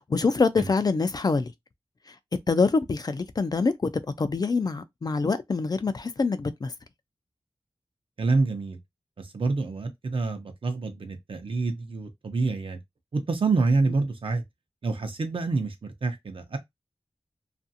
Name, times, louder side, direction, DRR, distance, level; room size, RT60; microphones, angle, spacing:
voice 1, 0.1-1.5 2.5-3.7 4.2-6.7, left 4 dB, 40° left, 0.3 m, -25 dB
voice 2, 8.2-8.8 9.2-12.8 13.1-14.4 14.8-16.6, right 3 dB, 60° right, 0.6 m, -27 dB
2.5 x 2.4 x 2.6 m
wide cardioid pair, 70°, 10 cm